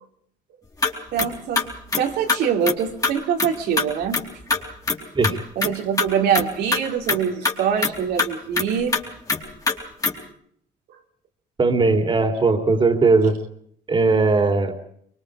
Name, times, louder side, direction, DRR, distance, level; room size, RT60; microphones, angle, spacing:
sound 1, 0.8-0.9 1.2-1.3 1.6-2.0 2.3-2.4 2.7-2.8 3.0-3.1 3.4-3.5 3.8-3.9 4.1-4.2 4.5-5.0 5.2-5.3 5.6-5.7 6.0-6.1 6.3-6.5 6.7-6.8 7.1-7.2 7.4-7.5 7.8-7.9 8.2-8.3 8.6-8.7 8.9-9.0 9.3-9.4 9.7-9.8 10.0-10.1, left 4 dB, 20° left, 4.1 m, -22 dB
voice 1, 1.1-1.7 2.0-4.2 5.5-9.0, right 7 dB, 80° right, 3 dB, 3.1 m, -24 dB
voice 2, 11.6-13.4 13.9-14.7, right 3 dB, 30° right, 7 dB, 3.2 m, -18 dB
24.0 x 24.0 x 4.9 m, 0.66 s
cardioid pair, 110°, 17 cm